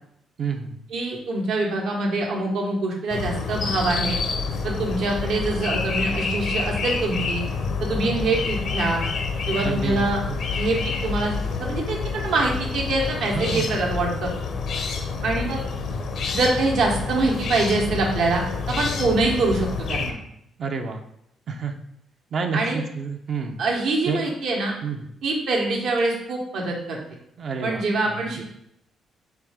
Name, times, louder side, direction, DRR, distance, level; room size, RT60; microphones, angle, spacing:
voice 1, 0.4-0.8 9.5-10.4 13.3-13.8 20.6-21.0 21.5-21.7 22.3-23.6 24.1-24.2 24.8-25.1 27.4-27.8 28.1-28.2, right 5 dB, 55° right, 4 dB, 0.6 m, -29 dB
voice 2, 0.9-4.2 4.6-7.4 7.8-9.0 9.5-10.2 10.5-11.3 11.6-14.3 15.2-15.6 16.3-20.2 22.5-22.8 23.6-24.7 25.2-27.0 27.6-28.4, right 2 dB, 75° right, -1 dB, 1.2 m, -24 dB
sound 1, 3.1-20.1, left 4 dB, 65° left, 0.6 m, -28 dB
4.6 x 3.2 x 3.5 m, 0.75 s
cardioid pair, 90°, 0 cm